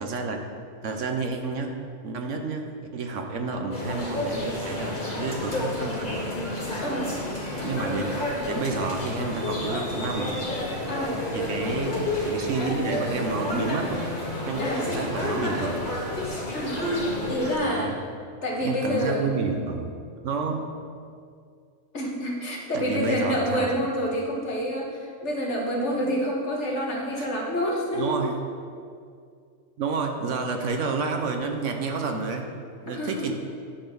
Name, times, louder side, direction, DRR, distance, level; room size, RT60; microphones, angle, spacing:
voice 1, 0.0-0.4 0.8-1.7 2.0-2.7 2.9-6.4 7.6-8.2 8.4-10.4 11.3-14.1 14.5-16.0 17.6-17.9 18.6-19.9 20.2-20.7 22.7-23.7 27.2-27.3 28.0-28.3 29.8-32.5 32.8-33.3, right 4 dB, 70° right, 4 dB, 1.1 m, -30 dB
sound 1, 3.7-17.6, left 1 dB, 30° left, 1.9 m, -30 dB
voice 2, 6.8-7.2 10.9-11.2 14.6-14.9 16.5-18.0 18.4-19.3 21.9-28.3 32.9-33.3, equal, 60° left, -2 dB, 1.7 m, -28 dB
9.9 x 4.2 x 6.8 m, 2.3 s
omnidirectional pair, 1.4 m